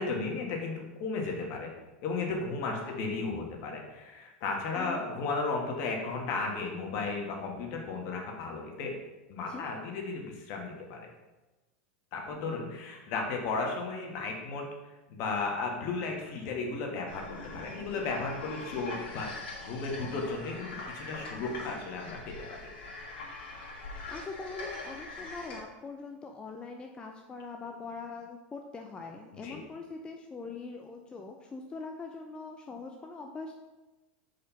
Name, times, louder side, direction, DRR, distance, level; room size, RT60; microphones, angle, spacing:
voice 1, 0.0-1.7 2.0-9.0 9.3-11.1 12.1-14.7 15.1-17.2 17.5-22.7 29.4-29.6, left 3 dB, 50° left, 1 dB, 1.5 m, -34 dB
sound 1, 17.1-25.6, left 3 dB, 80° left, 2.2 m, -43 dB
voice 2, 23.7-33.5, left 4 dB, 15° left, 2 dB, 0.5 m, -43 dB
4.9 x 4.4 x 5.6 m, 1.1 s
supercardioid pair, 140°, 6 cm